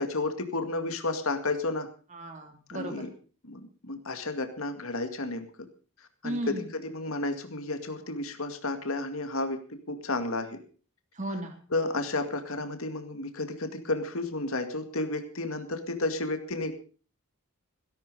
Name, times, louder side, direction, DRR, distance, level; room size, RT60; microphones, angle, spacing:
voice 1, 0.0-1.9 2.7-3.1 3.4-5.7 6.2-10.6 11.7-16.7, left 2 dB, 65° left, 7 dB, 2.1 m, -32 dB
voice 2, 2.1-3.1 6.2-6.7 11.1-11.6, right 1 dB, 35° right, 4 dB, 3.3 m, -35 dB
17.0 x 11.5 x 5.5 m, 0.40 s
head